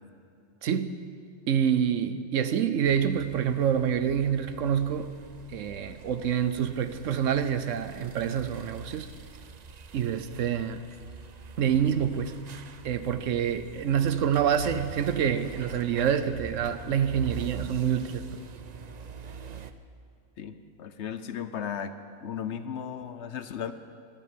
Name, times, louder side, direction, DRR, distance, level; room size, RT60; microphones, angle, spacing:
voice 1, 0.6-1.1 1.5-5.1 5.5-9.1 9.9-10.8 11.6-12.4 12.8-18.3, right 8 dB, 70° right, 1.1 m, -27 dB
sound 1, 2.8-19.7, right 6 dB, 50° right, 0.5 m, -44 dB
voice 2, 20.4-22.0 22.2-23.7, left 8 dB, 60° left, 1.0 m, -35 dB
12.5 x 10.5 x 9.2 m
omnidirectional pair, 1.4 m